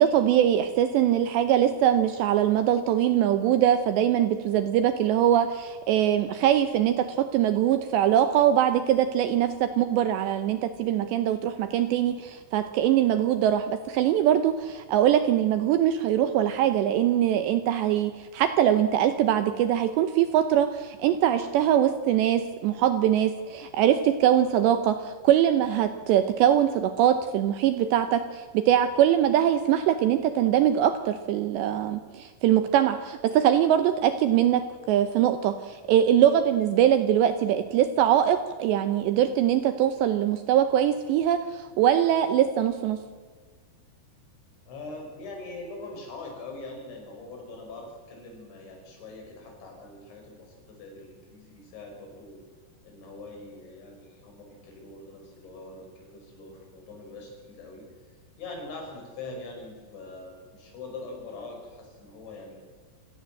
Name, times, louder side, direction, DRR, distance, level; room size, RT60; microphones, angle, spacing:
voice 1, 0.0-43.0, right 10 dB, 75° right, 10 dB, 2.7 m, -22 dB
voice 2, 44.7-52.4 52.8-62.6, left 2 dB, 65° left, 2 dB, 7.6 m, -43 dB
26.5 x 17.5 x 7.7 m, 1.5 s
omnidirectional pair, 5.8 m